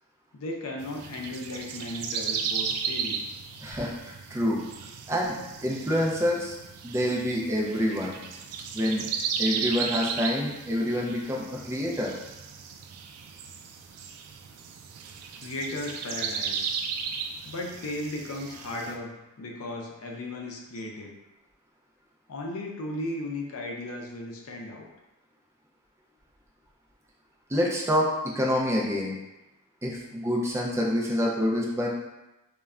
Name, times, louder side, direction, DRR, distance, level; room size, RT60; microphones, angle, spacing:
voice 1, 0.3-3.2 15.4-16.7 17.4-21.1 22.3-24.9, left 1 dB, 70° left, 0 dB, 0.5 m, -36 dB
sound 1, 0.8-18.9, right 6 dB, 85° right, 0.3 m, -35 dB
voice 2, 3.6-4.6 5.1-5.3 5.6-6.5 6.8-8.2 8.7-9.1 9.4-12.1 27.5-29.2 29.8-31.9, equal, 15° right, -3 dB, 0.4 m, -27 dB
2.2 x 2.1 x 3.5 m, 1.0 s
head